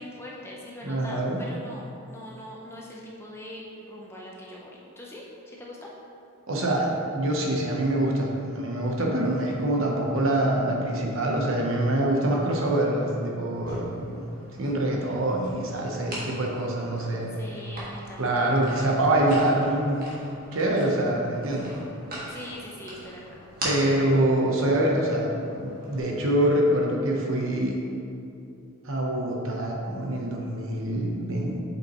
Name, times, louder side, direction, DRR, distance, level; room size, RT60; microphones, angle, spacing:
voice 1, 0.0-5.9 15.9-16.4 17.3-18.7 22.3-23.5, left 1 dB, 10° left, -3 dB, 0.6 m, -42 dB
voice 2, 0.8-1.4 6.5-8.3 8.5-14.2 14.6-17.3 18.2-20.1 20.5-21.7 22.2-22.4 23.6-27.7 28.8-31.6, right 1 dB, 65° right, -1 dB, 1.0 m, -25 dB
sound 1, 13.5-26.0, right 1 dB, 40° right, 1.5 m, -42 dB
7.8 x 5.3 x 3.1 m, 2.6 s
head